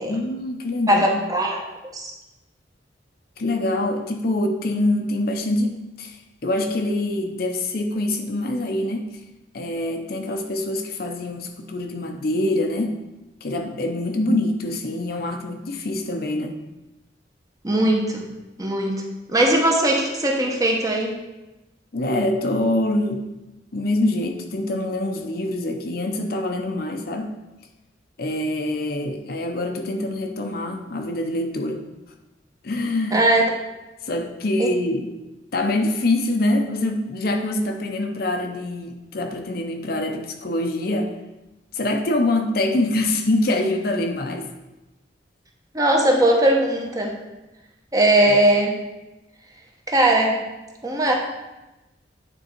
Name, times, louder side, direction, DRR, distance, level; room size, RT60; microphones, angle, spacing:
voice 1, 0.1-1.2 3.4-9.2 9.5-13.0 13.4-16.6 21.9-23.3 23.7-27.3 28.2-31.8 32.6-33.3 34.0-35.1 35.5-41.1 41.7-44.5 48.3-48.4, left 1 dB, 55° left, 4 dB, 0.7 m, -25 dB
voice 2, 0.9-1.6 1.9-2.1 17.6-18.2 18.6-18.9 19.3-21.1 33.1-33.4 34.6-34.7 45.7-47.1 47.9-48.7 49.9-50.4 50.8-51.2, right 1 dB, 20° right, 0 dB, 0.9 m, -19 dB
9.0 x 3.7 x 4.4 m, 1.0 s
head